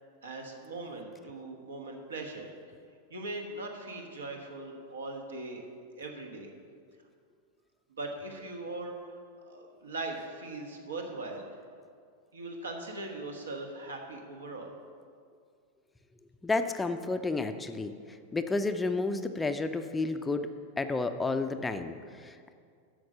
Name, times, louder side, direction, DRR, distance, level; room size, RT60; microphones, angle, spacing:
voice 1, 0.2-2.5 3.1-5.6 5.9-6.5 7.9-9.2 9.4-11.4 12.3-14.7, right 2 dB, 70° right, 2 dB, 1.4 m, -40 dB
voice 2, 16.4-20.5 20.8-22.5, left 3 dB, 10° left, 8 dB, 0.5 m, -31 dB
8.6 x 6.4 x 6.7 m, 2.2 s
figure-of-eight pair, 90°, 0 cm